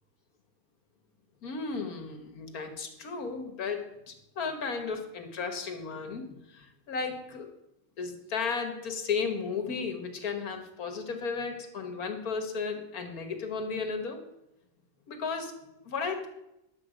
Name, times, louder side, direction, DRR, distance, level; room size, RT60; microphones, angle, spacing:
voice 1, 1.4-7.5 8.0-14.2 15.1-15.6 15.9-16.3, left 5 dB, 85° left, 6 dB, 1.8 m, -34 dB
10.5 x 7.2 x 5.0 m, 0.85 s
omnidirectional pair, 1.5 m